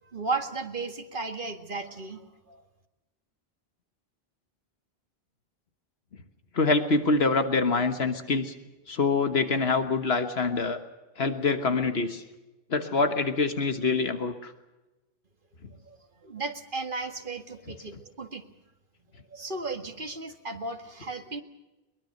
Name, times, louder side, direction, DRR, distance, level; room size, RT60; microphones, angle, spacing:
voice 1, 0.0-2.6 15.8-18.4 19.3-21.4, right 3 dB, 55° right, 6 dB, 2.1 m, -35 dB
voice 2, 6.5-8.5 8.9-10.8 11.2-12.2 12.7-14.5, left 4 dB, 80° left, 8 dB, 1.7 m, -25 dB
22.5 x 21.5 x 6.6 m, 1.1 s
omnidirectional pair, 1.0 m